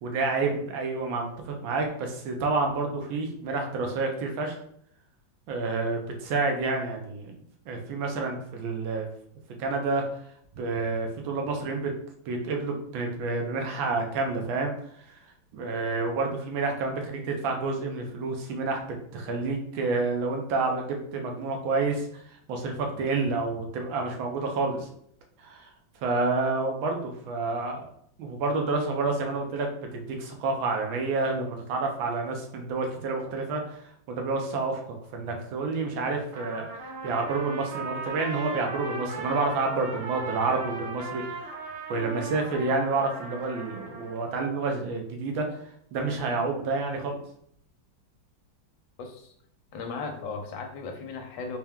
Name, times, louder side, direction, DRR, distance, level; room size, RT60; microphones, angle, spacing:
voice 1, 0.0-4.6 5.5-7.4 7.7-9.1 9.6-10.0 10.6-11.9 12.3-14.7 15.1-15.2 15.5-18.8 19.1-24.9 25.4-25.7 26.0-27.9 28.2-36.6 37.0-41.5 41.9-45.5 45.9-47.2, right 3 dB, 90° right, 2 dB, 1.5 m, -29 dB
Trumpet, 36.3-44.2, right 3 dB, 55° right, 0.9 m, -38 dB
voice 2, 49.0-49.3 49.7-51.6, left 4 dB, 75° left, 4 dB, 1.4 m, -36 dB
4.4 x 2.2 x 3.5 m, 0.67 s
omnidirectional pair, 2.1 m